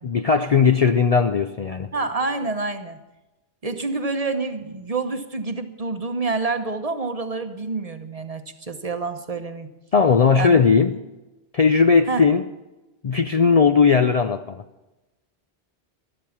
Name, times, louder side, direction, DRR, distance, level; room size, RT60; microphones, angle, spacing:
voice 1, 0.0-1.9 9.9-11.0 11.5-12.4 13.0-14.6, left 5 dB, 45° left, 8 dB, 0.5 m, -18 dB
voice 2, 1.9-3.0 3.6-9.7 10.3-10.6 12.1-12.2, right 3 dB, 35° right, 8 dB, 1.0 m, -27 dB
12.5 x 12.5 x 7.1 m, 1.1 s
omnidirectional pair, 1.1 m